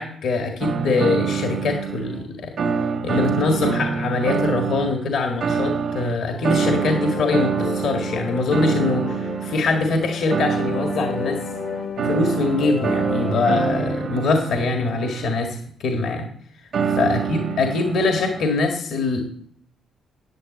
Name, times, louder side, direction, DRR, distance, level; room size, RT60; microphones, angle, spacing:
voice 1, 0.0-2.6 3.0-11.4 12.0-16.3 16.8-19.2, left 3 dB, 70° left, 3 dB, 1.8 m, -23 dB
sound 1, 0.6-2.3 2.6-5.0 5.4-15.4 16.7-18.5, right 6 dB, 65° right, 1.3 m, -26 dB
sound 2, 6.2-14.1, left 5 dB, 50° left, 1.0 m, -32 dB
10.0 x 8.2 x 7.8 m, 0.65 s
cardioid pair, 90°, 0 cm